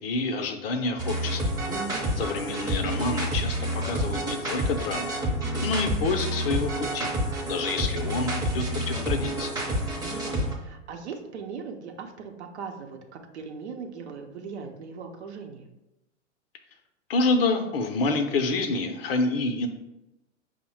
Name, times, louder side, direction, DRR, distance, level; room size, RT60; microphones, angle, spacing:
voice 1, 0.0-1.4 2.2-5.1 5.6-7.1 7.4-9.5 17.1-19.7, left 3 dB, 50° left, 5 dB, 0.6 m, -28 dB
sound 1, 1.0-10.5, right 1 dB, 10° right, 0.8 m, -29 dB
voice 2, 1.7-2.3 9.9-15.7, right 5 dB, 60° right, 4 dB, 0.8 m, -39 dB
5.4 x 2.1 x 4.5 m, 0.97 s
figure-of-eight pair, 105°, 38 cm